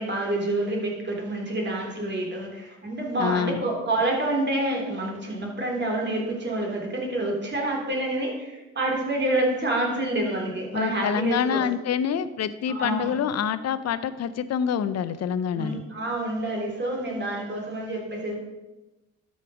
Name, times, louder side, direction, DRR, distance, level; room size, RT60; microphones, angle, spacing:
voice 1, 0.0-11.6 12.7-13.1 15.5-18.4, right 1 dB, 35° right, -1 dB, 3.1 m, -28 dB
voice 2, 3.2-3.6 10.7-15.8, left 8 dB, 60° left, 13 dB, 0.7 m, -26 dB
12.5 x 5.4 x 5.0 m, 1.1 s
cardioid pair, 90°, 30 cm